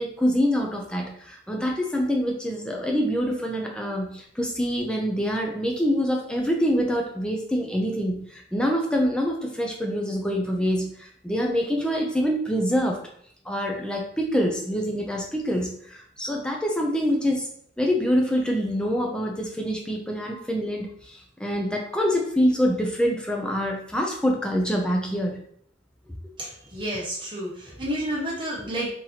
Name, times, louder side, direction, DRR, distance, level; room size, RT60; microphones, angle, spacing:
voice 1, 0.0-13.0 13.5-17.5 17.8-25.4, equal, 5° left, 0 dB, 0.5 m, -25 dB
voice 2, 26.4-28.9, right 1 dB, 25° right, -6 dB, 1.2 m, -30 dB
3.9 x 3.0 x 2.8 m, 0.65 s
head